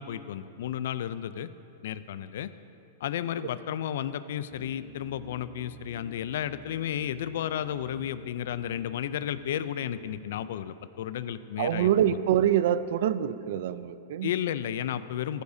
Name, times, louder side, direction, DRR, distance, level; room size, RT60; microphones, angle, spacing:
voice 1, 0.0-1.5 1.8-2.5 3.0-12.2 14.2-15.4, left 10 dB, 70° left, 14 dB, 0.4 m, -33 dB
sound 1, 4.5-10.9, left 3 dB, 10° right, 0.6 m, -53 dB
voice 2, 11.6-14.3, right 10 dB, 65° right, 14 dB, 0.4 m, -25 dB
14.5 x 12.0 x 2.7 m, 2.7 s
hypercardioid pair, 140°, 0 cm